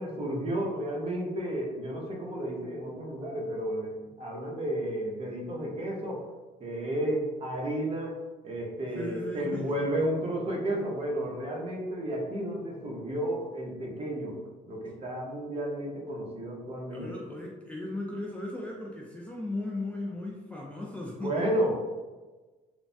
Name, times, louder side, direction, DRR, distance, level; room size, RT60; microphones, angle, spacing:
voice 1, 0.0-6.2 6.6-8.1 8.4-14.4 14.7-17.1 21.2-21.7, right 1 dB, 35° right, -1 dB, 0.7 m, -32 dB
voice 2, 8.9-9.7 16.9-21.4, left 2 dB, 10° left, -3 dB, 0.3 m, -37 dB
3.1 x 2.1 x 2.6 m, 1.2 s
cardioid pair, 110°, 17 cm